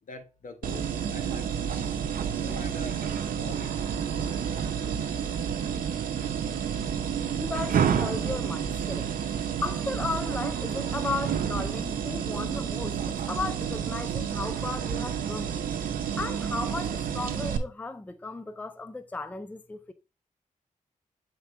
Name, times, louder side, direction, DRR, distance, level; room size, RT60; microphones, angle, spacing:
voice 1, 0.0-1.9 2.4-3.7 4.0-4.7, left 2 dB, 65° left, 1.2 m, -45 dB
sound 1, 0.6-17.6, right 8 dB, 85° right, 0.6 m, -30 dB
voice 2, 7.3-9.1 9.6-15.5 16.2-19.9, left 3 dB, 10° left, 0.4 m, -35 dB
6.4 x 4.4 x 3.4 m
cardioid pair, 90°, 14 cm